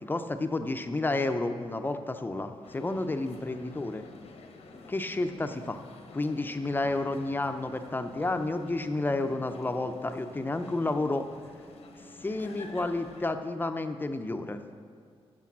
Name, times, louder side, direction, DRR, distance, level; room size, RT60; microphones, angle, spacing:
voice 1, 0.0-4.1 4.9-5.8 6.1-11.3 12.2-14.6, left 2 dB, 20° left, 7 dB, 0.5 m, -31 dB
sound 1, 2.6-13.3, left 3 dB, 85° left, 0.9 m, -50 dB
8.3 x 6.8 x 7.3 m, 2.2 s
wide cardioid pair, 120°, 10 cm